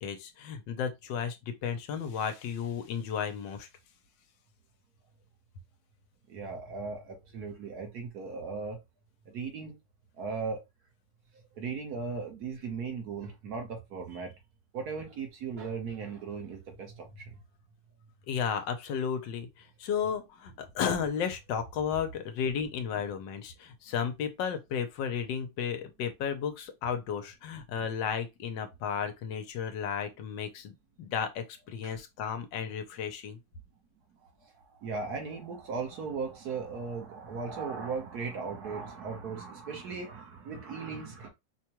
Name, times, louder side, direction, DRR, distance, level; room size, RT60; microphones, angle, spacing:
voice 1, 0.0-3.7 18.3-33.4, left 7 dB, 80° left, 1.4 m, -33 dB
voice 2, 6.3-8.8 9.2-9.8 10.2-10.6 11.5-14.3 14.7-17.4 20.0-20.1 31.8-32.0 34.4-41.3, right 5 dB, 60° right, 1.5 m, -37 dB
5.0 x 2.2 x 2.9 m
omnidirectional pair, 2.0 m